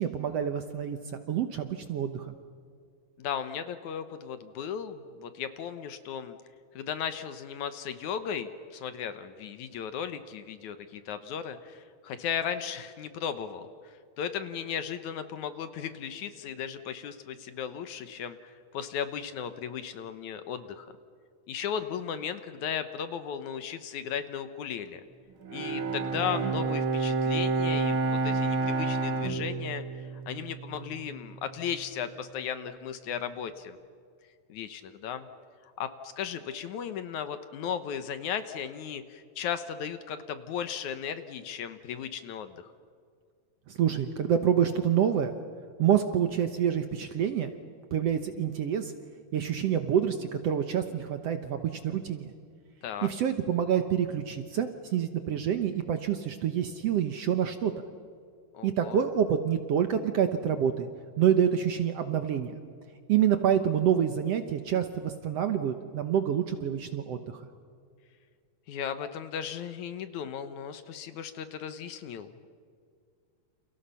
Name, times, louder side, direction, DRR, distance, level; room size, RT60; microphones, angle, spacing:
voice 1, 0.0-2.3 43.7-45.4 45.8-47.5 47.9-48.9 49.3-52.3 53.0-57.7 58.6-60.9 61.2-62.5 63.1-67.5, right 9 dB, 65° right, 8 dB, 1.6 m, -27 dB
voice 2, 3.2-6.4 6.7-20.9 21.5-25.0 25.5-33.8 34.5-35.3 35.6-42.7 52.8-53.1 58.5-59.0 68.7-72.5, left 8 dB, 65° left, 10 dB, 2.3 m, -36 dB
Bowed string instrument, 25.5-31.0, right 3 dB, 45° right, 2.0 m, -29 dB
29.5 x 29.0 x 5.7 m, 2.2 s
omnidirectional pair, 4.0 m